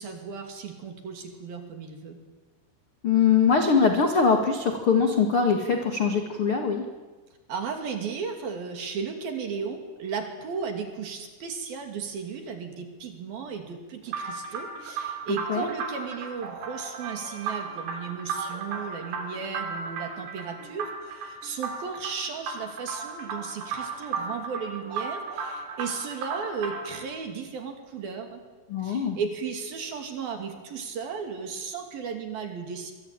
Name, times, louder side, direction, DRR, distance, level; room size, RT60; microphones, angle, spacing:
voice 1, 0.0-2.2 7.5-28.4 28.8-32.9, right 6 dB, 50° right, 4 dB, 4.0 m, -35 dB
voice 2, 3.0-6.8 15.5-15.7 28.7-29.2, left 5 dB, 70° left, 4 dB, 1.2 m, -22 dB
sound 1, 14.1-27.0, right 5 dB, 75° right, 6.1 m, -35 dB
25.0 x 24.0 x 9.0 m, 1.3 s
omnidirectional pair, 5.8 m